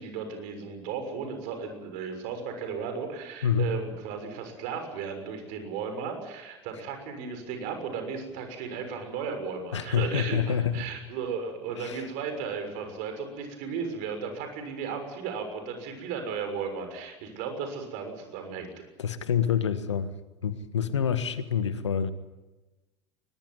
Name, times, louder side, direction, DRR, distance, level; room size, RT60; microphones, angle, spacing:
voice 1, 0.0-18.7, right 6 dB, 55° right, 6.5 m, -35 dB
voice 2, 3.4-3.7 9.7-10.9 11.8-12.0 19.0-20.1 20.4-22.1, left 8 dB, 80° left, 1.6 m, -27 dB
21.5 x 21.5 x 9.5 m
figure-of-eight pair, 75°, 15 cm